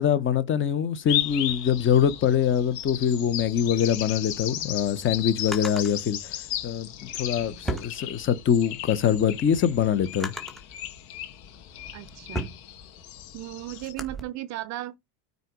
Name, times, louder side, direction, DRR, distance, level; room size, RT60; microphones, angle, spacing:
voice 1, 0.0-6.4 6.6-10.3, left 8 dB, 25° left, 0.8 m, -24 dB
sound 1, 1.1-13.9, left 12 dB, 70° left, 2.3 m, -35 dB
Drawer open or close, 4.3-5.9 7.0-8.6 9.1-10.7 11.4-14.2, right 1 dB, ahead, 1.6 m, -37 dB
voice 2, 11.9-12.6 13.3-15.0, right 15 dB, 35° right, 0.5 m, -36 dB
9.0 x 4.0 x 5.0 m
supercardioid pair, 140°, 49 cm